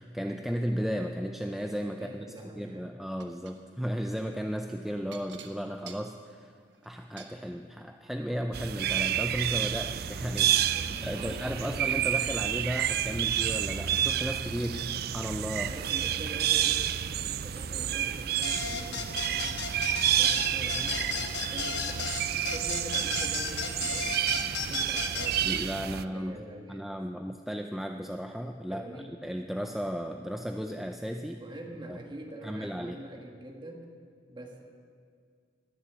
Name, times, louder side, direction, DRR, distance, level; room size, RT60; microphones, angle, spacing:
voice 1, 0.0-2.3 2.6-6.5 6.8-14.8 15.1-15.7 25.4-26.4 26.7-28.9 29.2-31.4 31.9-32.0 32.4-33.0, equal, ahead, 4 dB, 0.4 m, -34 dB
voice 2, 1.9-2.9 10.7-11.9 14.5-15.0 15.7-16.8 17.1-19.6 20.1-24.2 24.7-26.9 28.7-29.1 31.4-33.9 34.3-34.6, right 1 dB, 25° right, 1 dB, 1.8 m, -44 dB
sound 1, 3.2-3.6 5.1-7.4 8.4-8.5 8.9-9.0, right 7 dB, 90° right, 1.2 m, -49 dB
sound 2, 8.5-26.0, right 10 dB, 60° right, 0.4 m, -29 dB
sound 3, 18.4-25.3, left 5 dB, 70° left, 1.2 m, -34 dB
20.0 x 7.0 x 8.2 m, 2.1 s
head